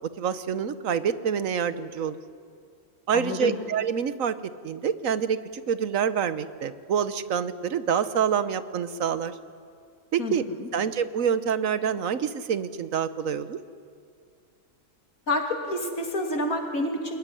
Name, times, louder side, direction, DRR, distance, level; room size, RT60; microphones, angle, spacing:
voice 1, 0.2-2.2 3.1-4.3 4.6-9.3 10.1-10.4 10.7-13.6, right 7 dB, 70° right, 13 dB, 1.3 m, -27 dB
voice 2, 3.1-3.6 10.2-10.7 15.3-17.2, left 1 dB, 85° left, 3 dB, 3.1 m, -29 dB
24.5 x 20.5 x 9.9 m, 2.3 s
omnidirectional pair, 1.4 m